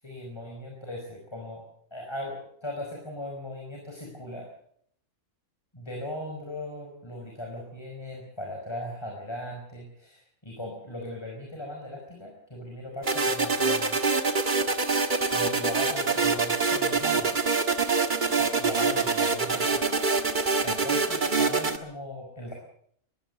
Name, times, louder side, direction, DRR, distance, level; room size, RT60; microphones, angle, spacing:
voice 1, 0.0-1.6 1.9-4.5 5.7-14.0 15.3-17.3 18.3-19.9 20.3-22.6, left 1 dB, 20° left, 0 dB, 5.0 m, -38 dB
sound 1, 13.0-21.8, right 4 dB, 35° right, 1.7 m, -25 dB
21.5 x 16.0 x 8.0 m, 0.66 s
omnidirectional pair, 1.5 m